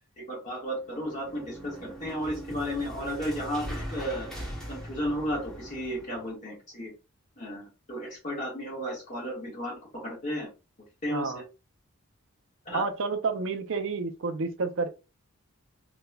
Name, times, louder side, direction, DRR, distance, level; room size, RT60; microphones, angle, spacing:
voice 1, 0.2-4.3 4.7-6.9 7.4-10.5 11.0-11.4 12.7-12.8, equal, 35° left, 1.6 m, -33 dB
sound 1, 0.8-6.3, equal, 5° left, 0.9 m, -41 dB
voice 2, 11.1-11.4 12.7-14.9, right 4 dB, 60° right, 0.5 m, -30 dB
3.4 x 2.9 x 2.3 m
head